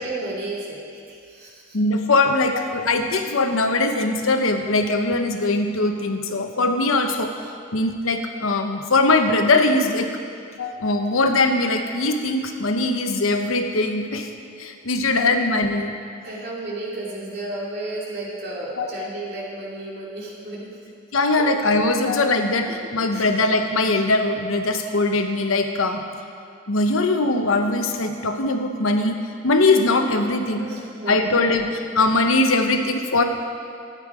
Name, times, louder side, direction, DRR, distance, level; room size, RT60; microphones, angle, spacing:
voice 1, 0.0-1.8 15.2-15.3 16.2-20.7 21.3-21.4 23.1-23.3 30.6-31.4, right 2 dB, 55° right, -5 dB, 2.7 m, -33 dB
voice 2, 1.7-7.3 7.7-10.1 10.6-14.3 14.6-15.9 18.8-19.1 21.1-26.0 26.7-29.2 29.4-30.7 31.1-33.2, left 2 dB, 85° left, 6 dB, 0.9 m, -21 dB
13.0 x 9.3 x 4.9 m, 2.3 s
head